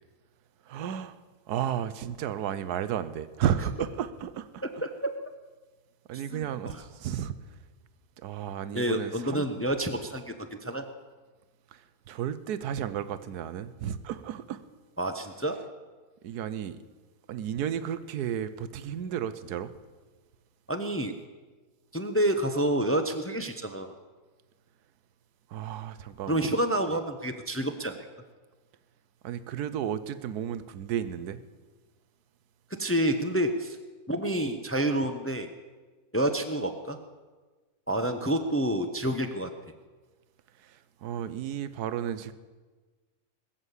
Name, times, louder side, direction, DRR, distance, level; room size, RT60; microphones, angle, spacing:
voice 1, 0.6-1.2 1.5-4.6 6.1-7.4 8.2-9.5 11.7-14.6 16.2-16.8 17.3-19.7 25.5-26.5 26.9-27.0 29.2-31.4 40.6-42.3, right 9 dB, 80° right, 1.3 m, -33 dB
voice 2, 8.7-10.8 15.0-15.7 20.7-21.1 21.9-23.9 26.3-28.1 32.8-33.8 34.1-35.5 36.1-37.0 37.9-39.5, right 1 dB, 10° left, 0.6 m, -28 dB
20.5 x 7.5 x 8.2 m
omnidirectional pair, 1.7 m